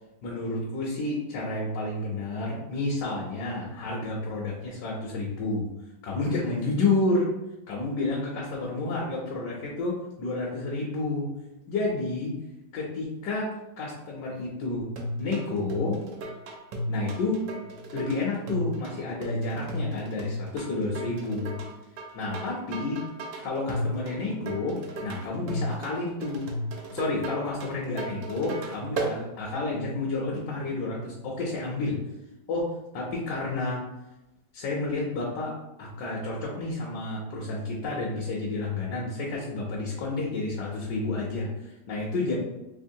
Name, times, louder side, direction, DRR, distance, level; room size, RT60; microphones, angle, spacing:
voice 1, 0.2-5.7 6.0-7.3 7.7-11.3 11.7-12.3 12.7-14.9 15.2-16.0 16.9-17.4 17.9-21.6 22.1-23.0 23.4-26.5 26.9-32.0 32.5-33.8 34.5-42.4, left 2 dB, 70° left, -3 dB, 1.2 m, -30 dB
sound 1, 15.0-29.2, equal, 70° right, 1.0 m, -34 dB
3.6 x 2.9 x 2.6 m, 0.95 s
omnidirectional pair, 2.1 m